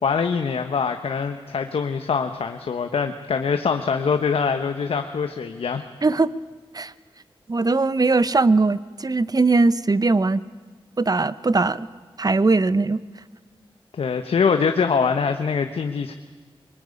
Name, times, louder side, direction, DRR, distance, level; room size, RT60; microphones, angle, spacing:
voice 1, 0.0-5.9 13.9-16.1, left 5 dB, 90° left, 7 dB, 1.2 m, -23 dB
voice 2, 7.5-10.4 11.0-11.9 12.2-13.0, right 3 dB, 40° right, 16 dB, 1.0 m, -20 dB
24.0 x 22.0 x 9.8 m, 1.4 s
cardioid pair, 55°, 10 cm